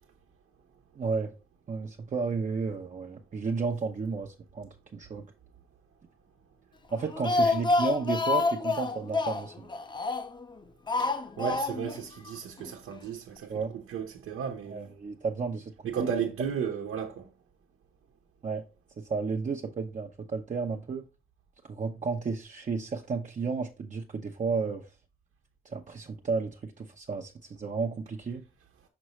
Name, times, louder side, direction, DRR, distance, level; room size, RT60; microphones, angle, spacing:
voice 1, 1.0-1.3 1.7-5.3 6.9-9.7 13.5-13.7 14.7-16.1 18.4-18.6 19.0-21.0 21.6-24.9 25.6-28.4, right 4 dB, 35° right, 0.8 m, -32 dB
Speech, 6.9-10.4 10.9-12.0 12.3-12.4 12.7-12.8, left 3 dB, 20° left, 0.6 m, -28 dB
voice 2, 10.9-14.9 15.8-17.3, right 7 dB, 85° right, 1.0 m, -34 dB
6.2 x 5.3 x 3.1 m
cardioid pair, 95°, 21 cm